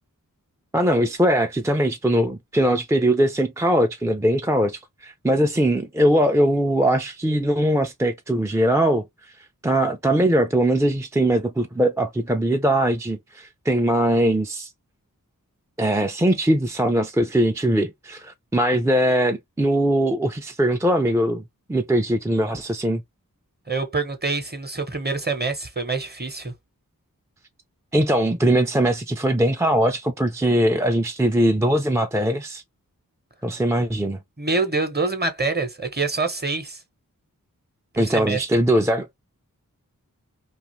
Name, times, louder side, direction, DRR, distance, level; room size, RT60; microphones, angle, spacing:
voice 1, 0.7-9.0 9.6-14.7 15.8-21.4 21.7-23.0 27.9-32.6 33.4-34.2 38.0-39.1, right 1 dB, 10° right, 0.3 m, -21 dB
voice 2, 23.7-26.5 34.4-36.8 37.9-38.4, right 3 dB, 30° right, 0.8 m, -26 dB
2.4 x 2.4 x 2.9 m
wide cardioid pair, 55°, 34 cm